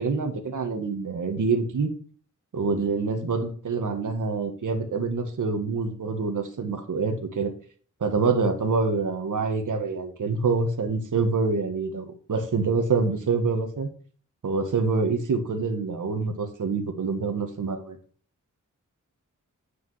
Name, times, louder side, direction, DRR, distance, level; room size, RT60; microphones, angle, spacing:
voice 1, 0.0-1.9 2.5-7.5 8.0-13.9 14.4-18.0, right 4 dB, 75° right, 5 dB, 1.7 m, -26 dB
9.3 x 5.0 x 5.7 m, 0.43 s
wide cardioid pair, 145°, 31 cm